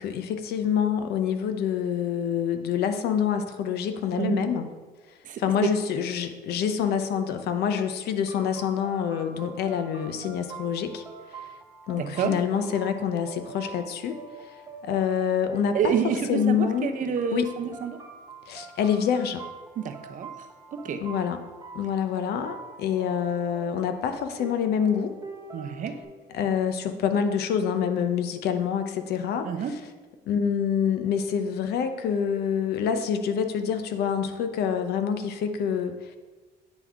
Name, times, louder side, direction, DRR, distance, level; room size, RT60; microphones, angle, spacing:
voice 1, 0.0-4.7 5.4-11.0 11.3-11.4 11.9-14.5 14.8-15.9 16.3-16.9 17.3-17.5 18.5-19.4 21.0-21.4 21.7-25.1 26.3-29.8 30.3-36.2, left 8 dB, 70° left, 8 dB, 0.6 m, -26 dB
voice 2, 4.2-4.6 5.2-5.8 12.0-12.4 15.7-18.0 19.8-20.5 20.7-21.0 25.5-26.0 29.4-29.7, right 7 dB, 50° right, 7 dB, 0.6 m, -28 dB
sound 1, 8.3-26.0, right 4 dB, 20° right, 1.1 m, -44 dB
9.0 x 3.5 x 3.6 m, 1.3 s
cardioid pair, 110°, 17 cm